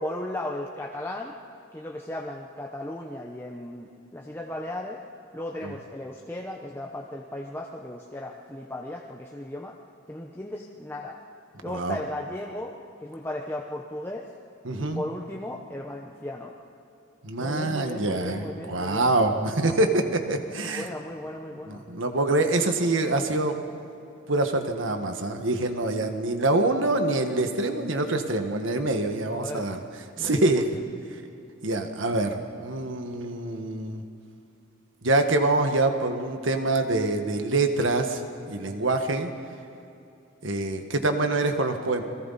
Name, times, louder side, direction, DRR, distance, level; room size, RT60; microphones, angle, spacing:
voice 1, 0.0-1.4 1.7-5.0 5.3-9.8 10.1-11.2 11.6-14.3 14.8-16.6 17.4-19.1 20.6-21.8 29.3-29.7 30.2-30.8, left 1 dB, 10° left, -1 dB, 0.9 m, -36 dB
voice 2, 11.7-12.0 14.6-15.0 17.2-20.9 21.7-23.5 24.3-29.8 30.2-30.7 31.6-34.0 35.0-38.2 38.5-39.3 40.4-42.0, right 2 dB, 70° right, 5 dB, 1.6 m, -25 dB
29.5 x 21.5 x 4.2 m, 2.8 s
head